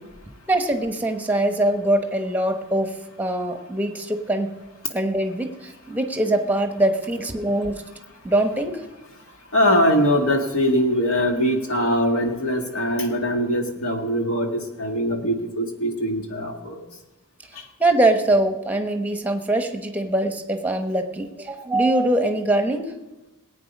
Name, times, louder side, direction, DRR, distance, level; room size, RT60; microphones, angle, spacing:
voice 1, 0.5-4.5 4.9-7.8 8.2-8.8 17.8-22.9, right 1 dB, 5° right, 6 dB, 1.1 m, -23 dB
voice 2, 9.5-16.8, equal, 65° left, 3 dB, 1.9 m, -22 dB
19.5 x 8.8 x 5.4 m, 1.1 s
head